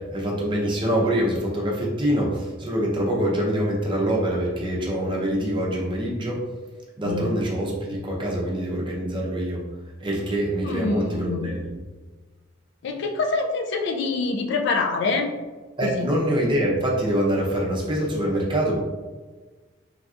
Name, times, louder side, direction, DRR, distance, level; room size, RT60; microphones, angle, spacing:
voice 1, 0.1-6.4 7.0-9.6 10.0-11.6 15.8-18.8, equal, 25° right, -3 dB, 0.6 m, -25 dB
voice 2, 10.6-11.5 12.8-15.3 15.8-16.1, left 3 dB, 65° left, 4 dB, 0.3 m, -26 dB
3.2 x 2.6 x 2.4 m, 1.3 s
head